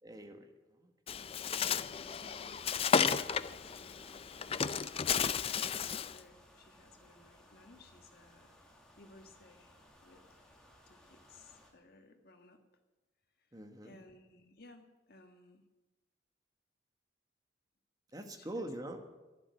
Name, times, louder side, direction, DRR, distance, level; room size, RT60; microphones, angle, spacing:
voice 1, 0.0-0.5 0.8-1.2 13.5-14.0 18.1-19.0, right 1 dB, 20° right, 5 dB, 1.4 m, -44 dB
Bird, 1.1-6.2, left 6 dB, 30° left, 0.4 m, -33 dB
voice 2, 1.4-8.6 9.0-10.3 10.9-12.6 13.4-13.5 13.8-15.6 18.2-18.9, left 2 dB, 55° left, 4 dB, 1.8 m, -59 dB
sound 1, 2.0-11.7, left 1 dB, 5° left, 2.1 m, -61 dB
12.0 x 11.0 x 9.4 m, 1.2 s
head